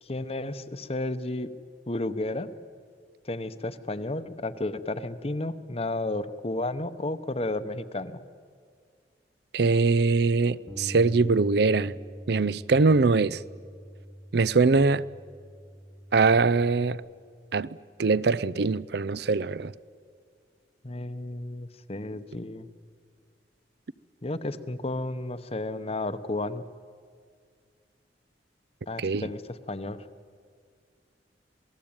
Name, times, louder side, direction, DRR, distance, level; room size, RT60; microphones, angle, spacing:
voice 1, 0.0-1.5 1.9-2.5 3.2-8.2 20.8-22.7 24.2-26.6 28.9-30.0, left 2 dB, 35° left, 0.9 m, -32 dB
voice 2, 9.5-12.0 12.3-13.4 14.3-15.0 16.1-17.0 17.5-17.7 18.0-19.7 29.0-29.3, right 4 dB, 60° right, 0.6 m, -22 dB
Bass guitar, 10.7-16.9, equal, 15° right, 1.4 m, -44 dB
27.0 x 18.5 x 8.8 m
head